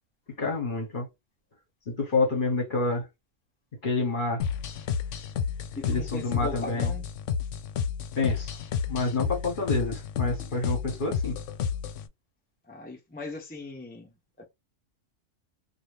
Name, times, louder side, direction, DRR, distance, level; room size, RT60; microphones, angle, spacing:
voice 1, 0.4-1.1 1.9-3.1 3.8-4.4 5.9-6.9 8.2-8.5 8.9-11.4, left 3 dB, 45° left, 1.2 m, -28 dB
sound 1, 4.4-12.1, left 7 dB, 75° left, 0.9 m, -31 dB
voice 2, 5.7-7.0 12.7-14.4, left 3 dB, 10° left, 0.6 m, -39 dB
2.7 x 2.4 x 3.3 m
omnidirectional pair, 1.3 m